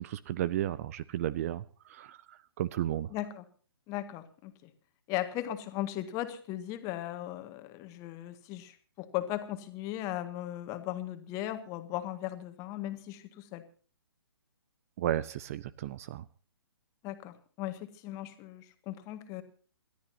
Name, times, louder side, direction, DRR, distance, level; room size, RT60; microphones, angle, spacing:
voice 1, 0.0-3.1 15.0-16.3, right 12 dB, 35° right, 19 dB, 0.6 m, -34 dB
voice 2, 3.1-3.4 3.9-4.7 5.1-13.6 17.0-19.4, left 13 dB, 25° left, 9 dB, 1.8 m, -37 dB
28.0 x 13.5 x 2.8 m, 0.40 s
figure-of-eight pair, 130°, 14 cm